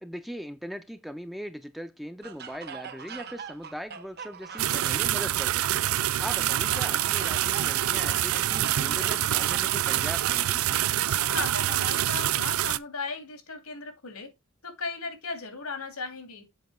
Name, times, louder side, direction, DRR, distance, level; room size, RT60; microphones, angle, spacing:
voice 1, 0.0-5.9 6.2-10.6, equal, ahead, 0.4 m, -39 dB
sound 1, 2.2-5.2 6.3-10.4 11.2-12.0, right 7 dB, 50° right, 0.9 m, -41 dB
sound 2, 4.6-12.8, right 12 dB, 70° right, 0.4 m, -26 dB
voice 2, 6.4-6.8 11.0-14.3 14.6-16.4, left 4 dB, 90° left, 2.6 m, -37 dB
7.8 x 5.0 x 4.7 m
head